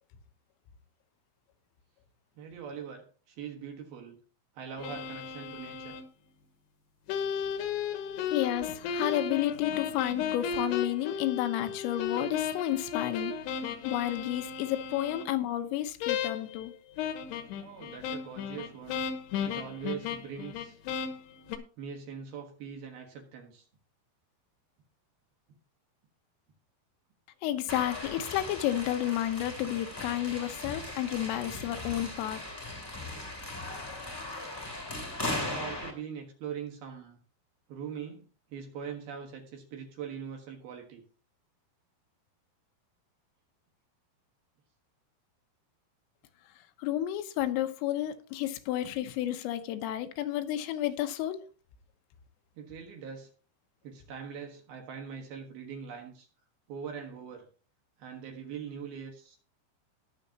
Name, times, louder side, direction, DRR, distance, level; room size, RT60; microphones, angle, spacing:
voice 1, 2.4-4.2 4.5-6.0 17.6-19.0 19.4-20.8 21.8-23.7 35.4-37.2 37.7-41.0 52.6-53.3 53.8-56.3 56.7-57.5 58.0-59.4, right 7 dB, 65° right, 2.8 m, -42 dB
sound 1, 4.8-6.0 7.1-15.3 16.0-16.6 17.0-21.6, left 7 dB, 70° left, 2.8 m, -35 dB
voice 2, 8.3-13.3 13.9-16.7 27.4-32.4 46.8-51.4, left 13 dB, 90° left, 3.6 m, -31 dB
sound 2, 27.7-35.9, left 2 dB, 10° left, 1.3 m, -38 dB
21.0 x 7.0 x 2.9 m
omnidirectional pair, 5.7 m